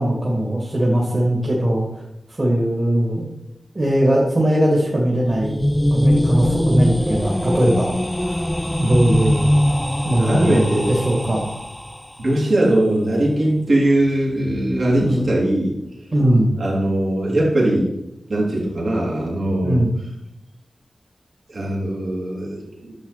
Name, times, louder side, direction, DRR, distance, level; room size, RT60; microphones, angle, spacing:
voice 1, 0.0-2.0 2.3-3.3 3.7-5.5 5.9-7.9 8.2-8.4 8.8-9.5 10.0-11.5 15.0-15.2 16.1-16.5 19.6-19.9, right 1 dB, 40° right, -2 dB, 2.3 m, -19 dB
sound 1, 5.1-12.1, equal, 5° left, 0.4 m, -21 dB
voice 2, 10.1-10.9 11.3-11.4 12.2-15.7 16.6-17.9 18.3-19.8 21.5-22.9, right 1 dB, 65° right, -4 dB, 3.0 m, -20 dB
10.5 x 7.1 x 4.2 m, 0.85 s
wide cardioid pair, 70°, 0 cm